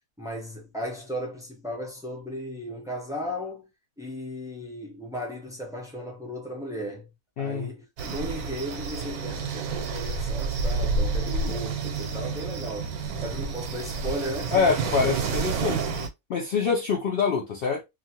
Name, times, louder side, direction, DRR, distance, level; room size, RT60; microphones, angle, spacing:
voice 1, 0.2-3.7 4.0-7.1 7.4-12.9 13.2-14.9 15.3-15.8, equal, 5° right, 0.3 m, -36 dB
voice 2, 7.4-7.7 11.3-11.6 14.5-15.8 16.3-17.8, left 5 dB, 90° left, 0.5 m, -25 dB
sound 1, 8.0-16.1, right 4 dB, 85° right, 1.1 m, -29 dB
2.7 x 2.4 x 2.7 m
omnidirectional pair, 1.6 m